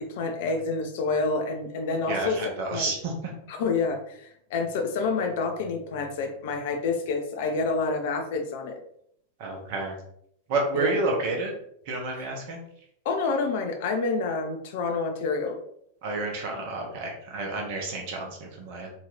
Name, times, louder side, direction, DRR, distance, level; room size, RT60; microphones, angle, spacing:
voice 1, 0.0-2.4 2.7-2.8 3.5-8.8 10.7-10.9 13.1-15.6, left 4 dB, 50° left, 5 dB, 0.5 m, -28 dB
voice 2, 2.1-3.1 9.4-10.0 10.5-11.5 11.9-12.6 16.0-18.9, right 2 dB, 45° right, 1 dB, 0.8 m, -30 dB
2.8 x 2.3 x 3.0 m, 0.70 s
figure-of-eight pair, 90°, 0 cm